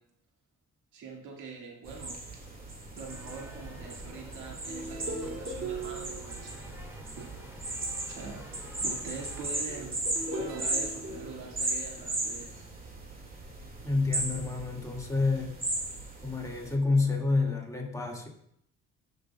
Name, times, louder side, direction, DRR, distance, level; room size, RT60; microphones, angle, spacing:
voice 1, 0.9-2.2 2.9-6.5 7.1-7.3 8.0-8.5 8.8-10.0 10.3-12.5, right 4 dB, 80° right, -1 dB, 2.0 m, -43 dB
sound 1, 1.8-16.7, right 2 dB, 30° right, 2.0 m, -37 dB
sound 2, 3.1-9.4, right 1 dB, 10° right, 2.1 m, -47 dB
sound 3, 4.7-11.9 12.5-12.8, right 2 dB, 45° right, 2.4 m, -40 dB
voice 2, 13.8-15.5 16.2-18.3, left 3 dB, 10° left, -1 dB, 2.0 m, -28 dB
15.5 x 6.4 x 2.3 m, 0.71 s
cardioid pair, 90°, 30 cm